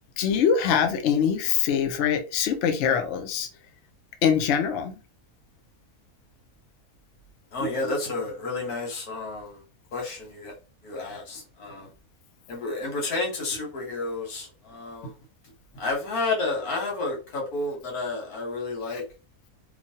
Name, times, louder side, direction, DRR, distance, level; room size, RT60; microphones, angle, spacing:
voice 1, 0.2-3.5 4.2-4.9, left 7 dB, 65° left, 0.7 m, -23 dB
voice 2, 7.5-9.6 9.9-10.5 10.8-11.9 12.5-15.1 15.7-19.0, left 3 dB, 85° left, 1.5 m, -31 dB
3.1 x 2.2 x 2.7 m
omnidirectional pair, 1.6 m